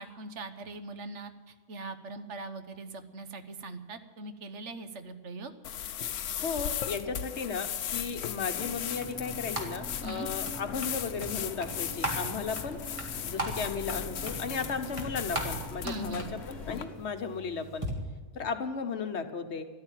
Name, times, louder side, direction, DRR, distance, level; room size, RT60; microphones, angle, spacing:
voice 1, 0.0-5.5 10.0-10.3 15.8-16.3, right 2 dB, 70° right, 9 dB, 1.4 m, -41 dB
sound 1, 5.6-16.8, left 9 dB, 85° left, 1.1 m, -37 dB
voice 2, 6.4-12.8 13.2-17.9 18.3-19.6, left 5 dB, 65° left, 8 dB, 1.3 m, -35 dB
sound 2, 8.2-17.9, right 1 dB, 25° right, 2.1 m, -40 dB
sound 3, 8.5-17.0, equal, ahead, 2.8 m, -47 dB
13.5 x 11.5 x 9.1 m, 1.4 s
omnidirectional pair, 1.2 m